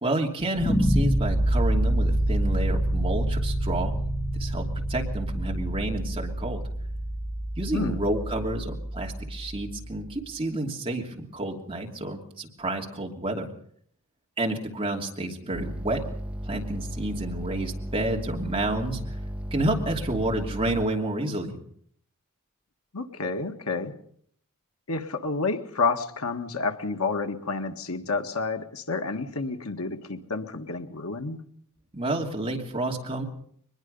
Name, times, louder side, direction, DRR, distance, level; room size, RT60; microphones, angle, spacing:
voice 1, 0.0-4.0 4.3-6.6 7.6-13.5 14.4-16.1 16.4-19.0 19.5-21.6 31.9-33.2, right 1 dB, 25° right, 0 dB, 2.8 m, -30 dB
sound 1, 0.6-9.6, right 1 dB, 15° left, 1.8 m, -26 dB
voice 2, 7.7-8.0 22.9-23.9 24.9-31.4, left 4 dB, 85° left, 6 dB, 1.7 m, -30 dB
sound 2, 15.5-20.9, right 1 dB, 5° right, 1.6 m, -35 dB
23.0 x 20.5 x 5.5 m, 0.64 s
head